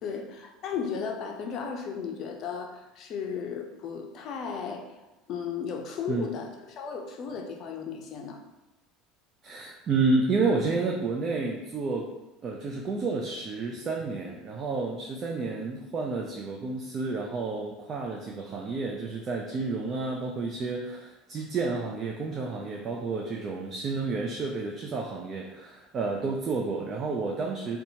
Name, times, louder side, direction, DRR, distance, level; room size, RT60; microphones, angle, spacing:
voice 1, 0.0-4.9 5.3-8.4, left 6 dB, 50° left, 3 dB, 0.4 m, -35 dB
voice 2, 9.4-12.1 12.4-27.8, right 3 dB, 40° right, 0 dB, 0.3 m, -30 dB
2.7 x 2.3 x 2.7 m, 0.99 s
hypercardioid pair, 80°, 0 cm